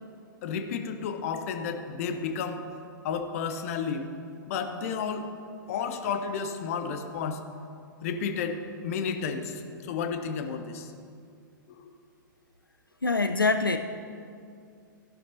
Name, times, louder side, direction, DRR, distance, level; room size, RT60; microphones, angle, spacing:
voice 1, 0.4-2.6 3.0-4.1 4.5-5.3 5.7-7.4 8.0-10.9 11.8-11.9, left 6 dB, 45° left, 7 dB, 0.9 m, -32 dB
voice 2, 13.0-13.8, left 3 dB, 85° left, 8 dB, 0.4 m, -24 dB
13.5 x 11.0 x 2.8 m, 2.4 s
figure-of-eight pair, 110°, 11 cm